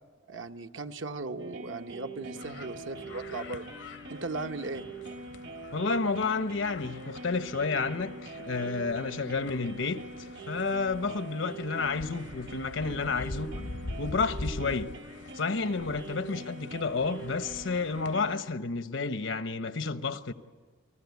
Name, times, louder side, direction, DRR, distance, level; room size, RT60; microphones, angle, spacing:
voice 1, 0.3-3.7 4.1-4.9, right 3 dB, 85° right, 1.1 m, -37 dB
sound 1, 1.4-18.4, right 3 dB, 60° right, 1.2 m, -44 dB
sound 2, 2.3-18.4, left 2 dB, 70° left, 0.7 m, -45 dB
voice 2, 5.7-10.0 10.5-13.6 14.0-14.9 15.3-20.3, left 4 dB, 85° left, 1.0 m, -30 dB
29.5 x 19.5 x 8.3 m
head